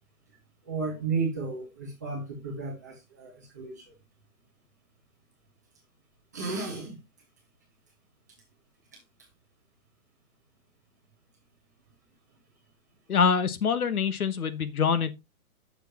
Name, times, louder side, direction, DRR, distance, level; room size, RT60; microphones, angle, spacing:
voice 1, 0.6-3.9 6.3-7.0 8.9-9.0, right 4 dB, 10° right, 0.9 m, -33 dB
voice 2, 13.1-15.1, left 6 dB, 75° left, 1.3 m, -25 dB
9.4 x 6.7 x 2.9 m
hypercardioid pair, 180°, 44 cm